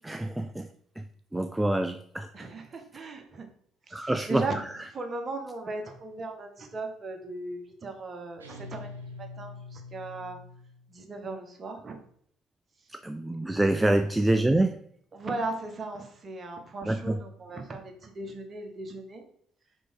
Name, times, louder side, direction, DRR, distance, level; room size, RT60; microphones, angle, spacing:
voice 1, 0.0-0.7 1.0-1.1 1.3-2.3 3.9-4.5 4.7-4.8 12.9-14.8 16.9-17.2, right 1 dB, 10° right, 9 dB, 0.4 m, -26 dB
voice 2, 2.3-3.5 3.9-4.5 4.9-8.9 9.2-10.4 10.9-12.0 13.8-13.9 15.1-19.2, right 3 dB, 35° right, 4 dB, 1.4 m, -37 dB
sound 1, 8.4-11.0, left 3 dB, 85° right, 0.9 m, -44 dB
5.2 x 4.7 x 4.5 m, 0.65 s
figure-of-eight pair, 55°, 0 cm